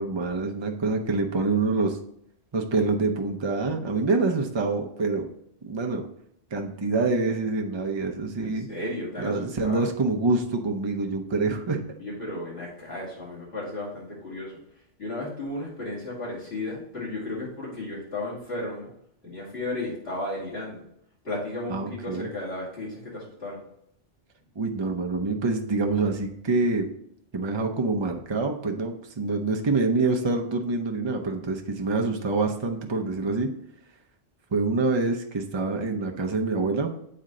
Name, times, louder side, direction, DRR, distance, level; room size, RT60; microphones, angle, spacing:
voice 1, 0.0-2.0 2.5-5.2 5.6-6.1 6.5-8.7 9.2-11.8 21.7-22.3 24.6-26.9 27.3-33.5 34.5-36.9, right 3 dB, 30° right, 3 dB, 0.6 m, -26 dB
voice 2, 8.3-9.9 12.0-14.6 15.0-18.9 19.2-20.8 21.2-23.6, left 2 dB, 60° left, -7 dB, 2.7 m, -34 dB
7.9 x 4.3 x 3.8 m, 0.73 s
omnidirectional pair, 1.2 m